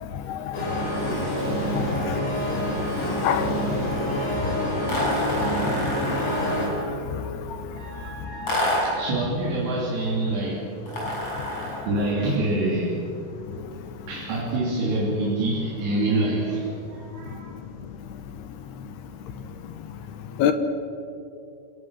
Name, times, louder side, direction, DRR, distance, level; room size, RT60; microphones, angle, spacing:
sound 1, 0.5-6.7, equal, 45° left, 6.3 m, -27 dB
voice 1, 3.0-3.5 20.4-20.5, left 9 dB, 70° left, 9 dB, 3.1 m, -23 dB
voice 2, 3.9-5.6 7.8-10.6 11.6-13.0 14.1-17.5, right 2 dB, 75° right, -3 dB, 5.1 m, -27 dB
sound 2, 4.9-6.9 8.5-9.1 10.9-11.9, left 1 dB, 30° left, 7.8 m, -28 dB
28.5 x 19.5 x 6.5 m, 2.6 s
omnidirectional pair, 5.0 m